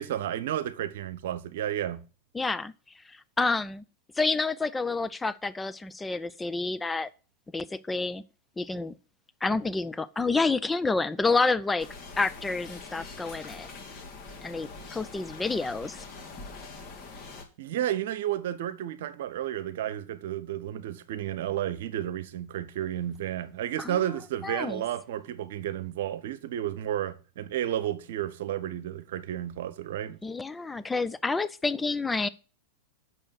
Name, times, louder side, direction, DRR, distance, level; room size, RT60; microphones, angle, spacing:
voice 1, 0.0-2.0 17.6-30.2, right 11 dB, 55° right, 1.0 m, -32 dB
voice 2, 2.3-2.7 3.1-3.8 4.2-7.1 7.5-8.2 8.6-8.9 9.4-11.9 12.2-13.7 14.4-16.0 23.8-24.0 24.4-24.8 30.2-32.3, left 3 dB, 10° left, 0.6 m, -29 dB
sound 1, 11.8-17.4, left 4 dB, 35° left, 2.7 m, -44 dB
8.8 x 6.4 x 7.7 m
figure-of-eight pair, 90°, 0 cm